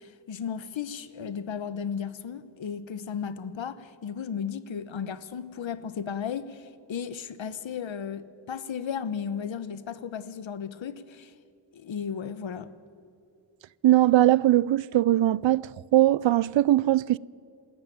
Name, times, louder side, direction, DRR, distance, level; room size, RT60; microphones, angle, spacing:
voice 1, 0.0-11.3 11.7-12.7, left 7 dB, 80° left, 1.1 m, -35 dB
voice 2, 13.8-17.2, right 14 dB, 80° right, 0.5 m, -21 dB
28.5 x 13.0 x 9.2 m
wide cardioid pair, 115°, 45 cm